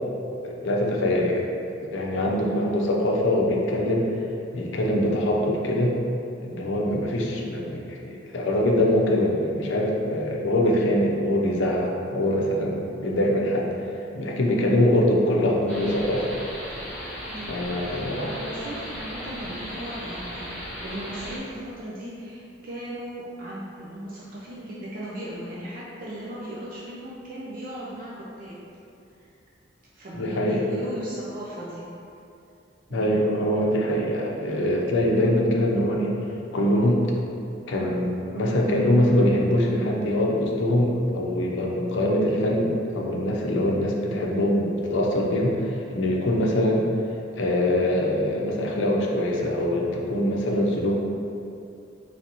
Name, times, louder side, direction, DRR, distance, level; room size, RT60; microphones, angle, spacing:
voice 1, 0.4-1.5 1.8-4.1 4.5-6.0 6.4-13.7 14.1-16.3 17.5-18.3 30.2-30.6 32.9-36.2 36.5-37.1 37.7-46.9 47.4-50.9, left 1 dB, 80° left, -1 dB, 0.6 m, -23 dB
voice 2, 2.3-2.7 17.3-28.6 29.1-29.3 29.9-31.8 32.9-33.2, right 1 dB, 45° right, -6 dB, 0.5 m, -37 dB
sound 1, 15.7-21.4, equal, 5° left, 0.8 m, -36 dB
4.0 x 3.2 x 2.9 m, 2.6 s
head